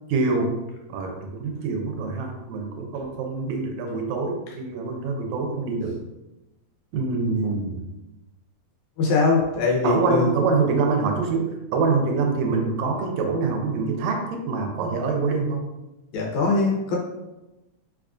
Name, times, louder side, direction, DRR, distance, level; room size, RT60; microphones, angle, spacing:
voice 1, 0.1-0.6 0.9-6.0 6.9-7.8 9.8-15.6, right 4 dB, 80° right, 2 dB, 1.8 m, -25 dB
voice 2, 9.0-10.3 16.1-17.0, left 4 dB, 90° left, -2 dB, 2.1 m, -21 dB
4.7 x 2.3 x 2.4 m, 1.0 s
omnidirectional pair, 3.3 m